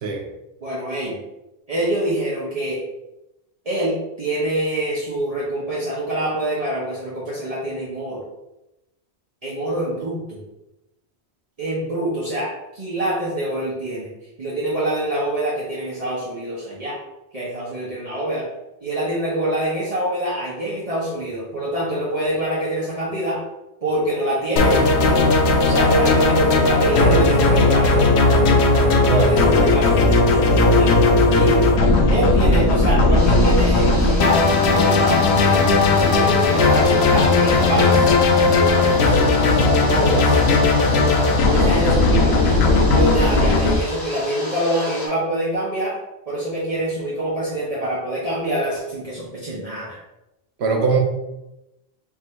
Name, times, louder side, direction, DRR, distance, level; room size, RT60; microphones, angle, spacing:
voice 1, 0.6-1.2 1.7-2.8 3.6-8.2 9.4-10.4 11.6-12.5 12.7-14.1 14.4-17.0 17.3-18.4 18.8-23.4 23.8-25.3 25.6-28.2 29.2-31.0 31.2-31.6 32.1-38.1 38.5-39.5 39.9-40.4 41.5-45.9 46.3-50.0, right 1 dB, 40° right, -7 dB, 0.9 m, -25 dB
sound 1, 24.6-43.8, left 3 dB, 85° left, 0.9 m, -16 dB
sound 2, 33.1-45.1, left 1 dB, 60° left, 1.4 m, -33 dB
voice 2, 50.6-51.0, right 4 dB, 85° right, 3 dB, 0.9 m, -21 dB
3.6 x 2.5 x 4.3 m, 0.95 s
omnidirectional pair, 1.1 m